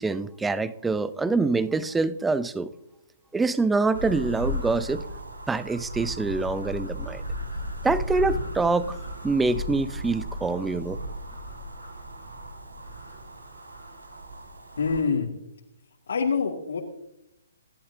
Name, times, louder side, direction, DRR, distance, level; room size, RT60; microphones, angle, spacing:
voice 1, 0.0-2.7 3.3-5.1 5.5-7.2 7.8-8.9 9.2-11.0, right 3 dB, 5° right, 16 dB, 0.7 m, -25 dB
sound 1, 3.9-15.0, equal, 80° right, 7.1 m, -35 dB
voice 2, 14.8-15.3 16.1-16.8, left 5 dB, 65° left, -1 dB, 2.5 m, -25 dB
28.0 x 12.0 x 2.8 m, 0.82 s
figure-of-eight pair, 130°, 0 cm